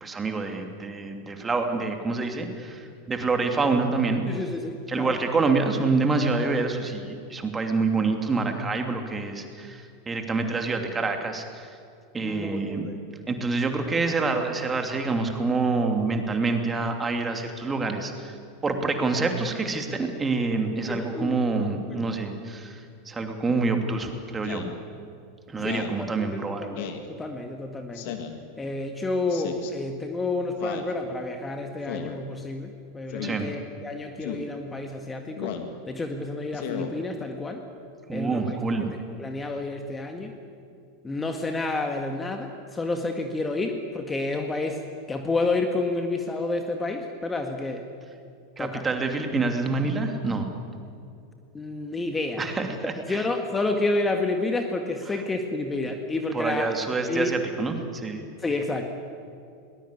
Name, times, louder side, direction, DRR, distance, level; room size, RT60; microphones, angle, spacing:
voice 1, 0.0-4.2 4.9-11.7 12.1-12.9 13.3-18.3 18.6-24.7 25.5-26.7 33.2-33.5 38.1-38.9 48.6-50.5 52.4-53.2 55.1-55.2 56.3-58.2, right 3 dB, 20° right, 5 dB, 2.8 m, -27 dB
voice 2, 4.3-5.2 12.2-13.0 20.9-22.0 25.6-28.2 28.6-35.6 35.9-37.6 38.1-38.4 39.2-40.4 41.0-44.8 45.1-47.8 48.6-48.8 51.5-52.4 53.1-56.7 57.0-57.3 58.4-58.8, left 2 dB, 15° left, 5 dB, 1.8 m, -30 dB
Speech synthesizer, 24.4-24.7 25.6-26.0 26.8-27.1 27.9-28.4 29.3-29.7 30.6-30.9 31.9-32.2 33.1-33.4 34.2-34.5 35.4-35.7 36.5-36.9, left 9 dB, 55° left, 2.2 m, -34 dB
21.5 x 20.0 x 8.4 m, 2.4 s
figure-of-eight pair, 90°, 0 cm